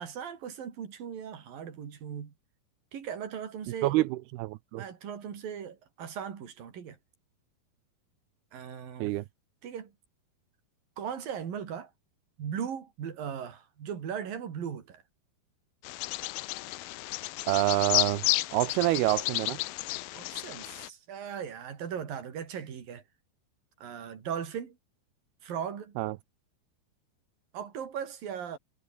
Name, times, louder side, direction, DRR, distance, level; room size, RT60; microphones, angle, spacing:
voice 1, 0.0-2.3 2.9-4.0 4.8-7.0 8.5-9.2 9.6-9.9 11.0-11.9 12.4-15.0 20.1-23.0 23.8-24.8 25.4-25.9 27.5-28.6, right 8 dB, 55° right, 4.6 m, -38 dB
voice 2, 3.8-4.8 9.0-9.2 17.5-18.2 18.5-19.6 26.0-26.2, right 18 dB, 75° right, 2.6 m, -27 dB
Bird vocalization bird call bird song, 15.8-20.9, left 19 dB, 80° left, 2.1 m, -32 dB
omnidirectional pair, 4.9 m